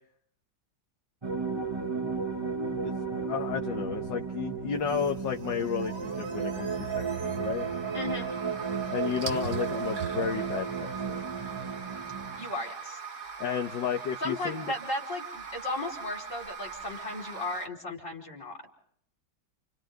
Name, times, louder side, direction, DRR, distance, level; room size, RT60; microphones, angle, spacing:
sound 1, 1.2-12.4, right 5 dB, 20° right, 0.7 m, -33 dB
voice 1, 2.8-7.7 8.9-11.2 13.4-14.7, left 7 dB, 70° left, 3 dB, 1.9 m, -33 dB
sound 2, 4.7-17.7, right 6 dB, 45° right, 1.8 m, -41 dB
voice 2, 7.9-8.3 12.4-13.0 14.2-18.6, left 2 dB, 40° left, -1 dB, 5.4 m, -35 dB
29.5 x 29.5 x 3.9 m, 0.66 s
omnidirectional pair, 2.1 m